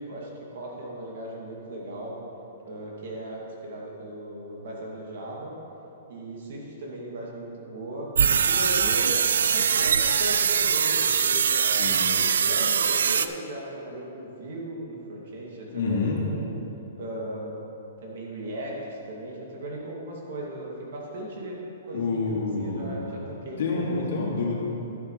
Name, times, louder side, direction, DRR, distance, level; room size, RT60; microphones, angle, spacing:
voice 1, 0.0-2.2 2.6-5.5 6.1-8.1 8.4-9.2 9.5-11.8 12.1-16.5 16.9-17.6 18.0-21.6 21.8-23.8, right 1 dB, 55° right, -3 dB, 2.4 m, -37 dB
sound 1, 8.2-13.3, right 7 dB, 85° right, 0.4 m, -22 dB
voice 2, 11.7-12.1 15.7-16.2 21.9-23.0 23.6-24.5, left 3 dB, 70° left, -3 dB, 2.3 m, -28 dB
12.0 x 10.0 x 3.3 m, 3.0 s
hypercardioid pair, 170°, 0 cm